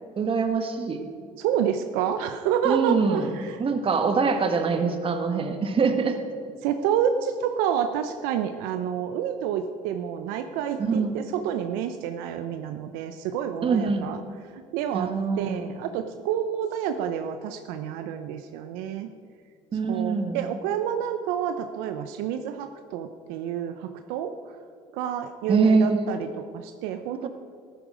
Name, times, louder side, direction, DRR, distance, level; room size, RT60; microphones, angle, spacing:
voice 1, 0.2-1.0 2.7-3.3 3.6-6.2 10.8-11.2 13.6-14.1 14.9-15.6 19.7-20.4 25.5-26.1 27.2-27.3, right 4 dB, 40° right, 6 dB, 1.6 m, -24 dB
voice 2, 1.4-3.6 6.6-14.2 14.5-15.1 15.4-19.1 19.9-24.6 24.9-26.3 26.5-27.3, right 9 dB, 80° right, 8 dB, 0.7 m, -29 dB
14.0 x 11.5 x 5.1 m, 2.2 s
supercardioid pair, 90°, 15 cm